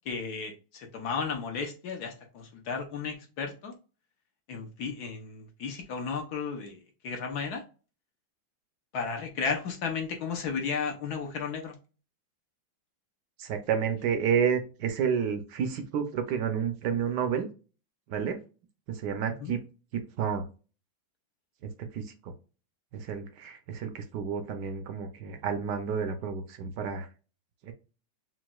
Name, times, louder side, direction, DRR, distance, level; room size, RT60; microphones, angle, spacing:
voice 1, 0.0-3.7 4.5-7.6 8.9-11.7 19.4-19.5, left 5 dB, 60° left, 3 dB, 1.1 m, -34 dB
voice 2, 13.4-17.5 18.1-18.4 18.9-19.6 20.2-20.4 21.9-22.3 22.9-27.1 27.6-27.7, right 7 dB, 70° right, 7 dB, 1.1 m, -30 dB
6.0 x 2.5 x 2.3 m, 0.33 s
omnidirectional pair, 2.3 m